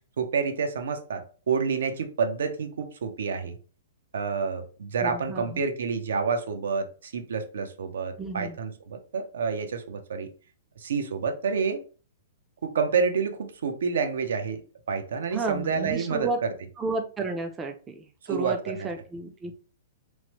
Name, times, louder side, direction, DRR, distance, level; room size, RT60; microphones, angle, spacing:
voice 1, 0.2-3.6 4.1-10.3 10.8-11.8 12.6-14.6 14.9-16.3 18.3-18.9, right 5 dB, 85° right, 0.5 m, -28 dB
voice 2, 5.0-5.6 8.2-8.6 15.3-16.4 16.8-19.6, right 3 dB, 15° right, 0.4 m, -32 dB
3.0 x 2.0 x 2.9 m
hypercardioid pair, 155°, 0 cm